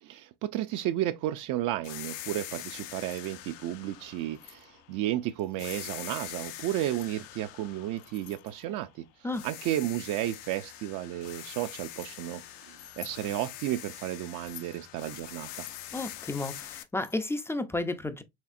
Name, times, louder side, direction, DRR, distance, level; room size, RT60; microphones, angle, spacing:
voice 1, 0.0-9.0 9.4-15.7, right 13 dB, 55° right, 0.4 m, -33 dB
sound 1, 1.8-5.1 5.6-9.0 9.3-16.8, left 13 dB, 85° left, 0.7 m, -44 dB
Keys jangling, 3.1-3.4 4.1-4.7 5.3-5.9 6.4-7.1 8.0-8.8 9.3-10.8 11.4-12.2 12.7-13.2 14.3-14.8 15.5-17.6, left 12 dB, 60° left, 0.8 m, -51 dB
voice 2, 15.9-18.2, left 2 dB, 5° left, 0.3 m, -32 dB
4.3 x 3.2 x 2.4 m
supercardioid pair, 105°, 37 cm